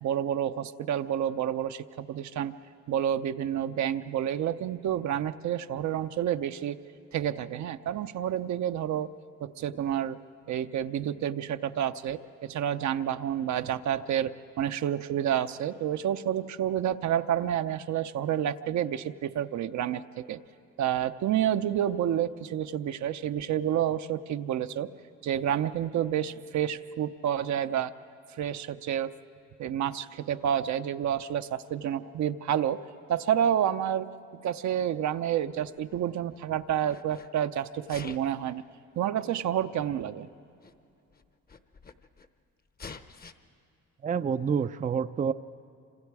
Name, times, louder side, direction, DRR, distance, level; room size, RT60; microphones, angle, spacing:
voice 1, 0.0-2.5 2.9-6.8 7.1-9.1 9.4-10.2 10.5-20.4 20.8-24.9 25.2-27.9 28.4-29.1 29.6-32.8 33.1-34.1 34.4-38.6 39.0-40.3, right 10 dB, 65° right, 10 dB, 0.7 m, -29 dB
Sneeze, 35.3-36.3 36.8-37.3 37.8-38.4 39.4-39.5 40.3-40.4 40.6-40.7 41.1-42.3 42.8-43.3, left 5 dB, 30° left, 0.9 m, -47 dB
voice 2, 44.0-45.3, right 6 dB, 25° right, 11 dB, 0.4 m, -28 dB
27.0 x 26.0 x 4.8 m, 2.5 s
cardioid pair, 90°, 30 cm